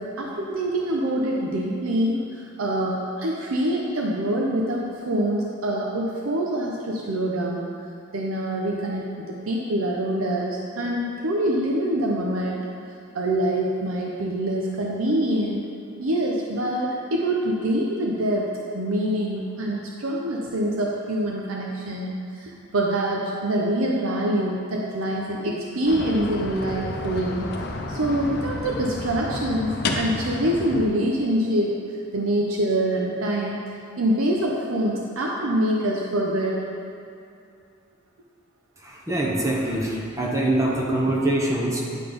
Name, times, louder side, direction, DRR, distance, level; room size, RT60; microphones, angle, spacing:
voice 1, 0.0-7.7 8.1-12.6 13.1-15.7 16.0-18.5 18.7-27.5 27.9-31.7 32.1-33.6 34.0-36.6, right 1 dB, 90° right, -2 dB, 0.7 m, -25 dB
sound 1, 25.9-30.9, left 2 dB, 55° left, 0.6 m, -31 dB
voice 2, 38.8-41.8, right 1 dB, 15° right, -3 dB, 0.8 m, -24 dB
9.3 x 3.9 x 5.1 m, 2.4 s
head